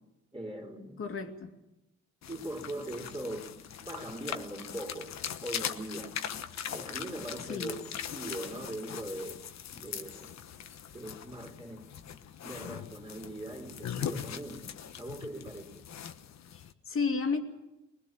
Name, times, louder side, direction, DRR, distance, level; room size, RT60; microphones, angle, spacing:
voice 1, 0.3-1.2 2.3-3.5 3.8-6.1 6.7-9.4 9.7-10.3 10.9-11.9 12.4-14.7 15.0-15.9, right 1 dB, 15° right, 3.6 m, -41 dB
voice 2, 1.0-1.5 7.5-7.7 16.5-17.4, left 5 dB, 45° left, 2.5 m, -32 dB
sound 1, 2.2-16.7, left 9 dB, 60° left, 1.2 m, -41 dB
22.0 x 20.5 x 7.4 m
cardioid pair, 90°, 30 cm